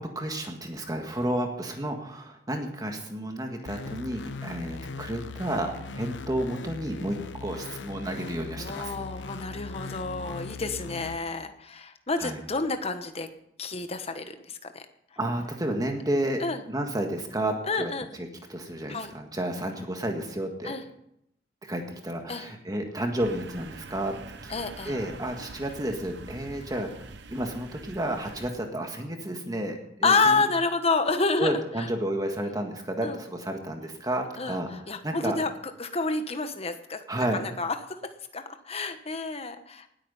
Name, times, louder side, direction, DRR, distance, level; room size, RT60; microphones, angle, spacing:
voice 1, 0.0-9.0 12.2-12.4 15.2-20.8 21.6-30.4 31.4-35.4 37.1-37.4, right 1 dB, 20° right, 3 dB, 1.7 m, -31 dB
sound 1, 3.7-11.2, left 4 dB, 85° left, 0.7 m, -39 dB
voice 2, 8.6-13.3 13.6-14.8 16.4-16.6 17.7-18.1 18.9-19.1 20.6-20.8 22.3-22.5 24.5-24.9 30.0-31.5 33.0-33.2 34.4-35.5 35.8-39.9, left 3 dB, 35° left, 8 dB, 1.2 m, -29 dB
sound 2, 23.2-28.5, right 3 dB, 75° right, 1.0 m, -45 dB
19.0 x 8.9 x 5.6 m, 0.76 s
head